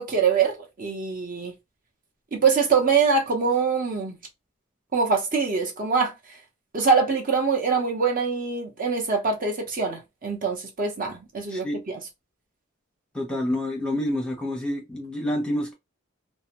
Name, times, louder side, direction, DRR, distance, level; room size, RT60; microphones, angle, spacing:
voice 1, 0.0-1.5 2.3-4.2 4.9-6.1 6.7-12.0, right 5 dB, 45° right, 0.8 m, -24 dB
voice 2, 11.5-11.8 13.1-15.7, left 1 dB, 5° left, 0.7 m, -28 dB
2.7 x 2.1 x 2.9 m
head